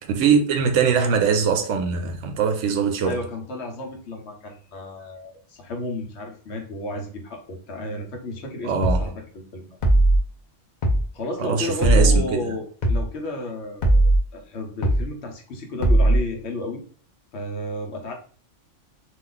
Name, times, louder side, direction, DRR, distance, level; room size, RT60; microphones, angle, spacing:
voice 1, 0.1-3.2 8.6-9.1 11.4-12.2, right 6 dB, 80° right, 0.9 m, -21 dB
voice 2, 3.0-9.7 11.1-16.8 17.3-18.1, left 1 dB, 65° left, 1.0 m, -32 dB
minimal drumloop no snare, 8.8-9.1 9.8-10.2 10.8-11.1 11.8-12.2 12.8-13.1 13.8-14.2 14.8-15.1 15.8-16.2, right 1 dB, 50° left, 0.6 m, -17 dB
2.4 x 2.3 x 3.8 m
omnidirectional pair, 1.2 m